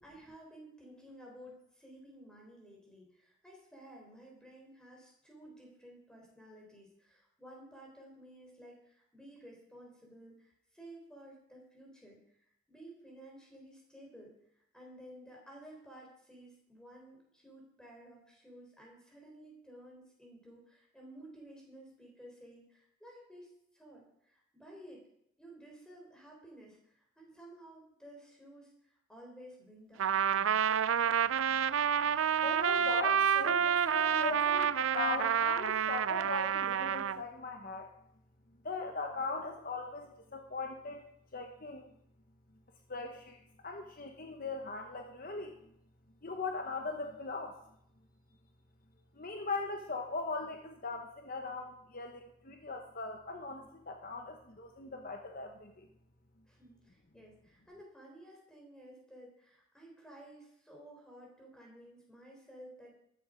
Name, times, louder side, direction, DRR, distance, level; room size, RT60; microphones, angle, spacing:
voice 1, 0.0-25.0 25.4-30.6 56.5-63.0, right 1 dB, 5° left, -2 dB, 3.9 m, -54 dB
Trumpet, 30.0-37.2, right 8 dB, 80° right, 0.4 m, -29 dB
voice 2, 32.4-37.9 38.6-41.0 41.3-41.9 42.9-45.6 46.2-47.6 49.1-55.9, left 3 dB, 45° left, 4 dB, 1.1 m, -39 dB
13.0 x 10.5 x 5.2 m, 0.75 s
head